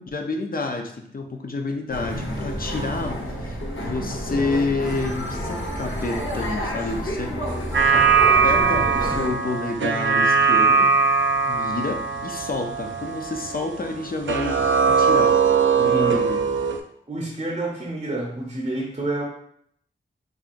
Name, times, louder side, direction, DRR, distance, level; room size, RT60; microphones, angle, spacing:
voice 1, 0.0-7.4 7.9-8.1 8.4-10.9 11.5-14.6 14.9-15.4 15.7-16.4, left 3 dB, 45° left, 4 dB, 0.5 m, -29 dB
sound 1, 1.9-9.3, equal, 70° left, 1.0 m, -29 dB
sound 2, 7.7-14.0 14.3-16.8, right 6 dB, 65° right, 0.4 m, -20 dB
voice 2, 15.9-16.3 17.1-19.2, right 2 dB, 30° right, -2 dB, 0.7 m, -28 dB
5.3 x 2.3 x 2.5 m, 0.68 s
wide cardioid pair, 60°, 21 cm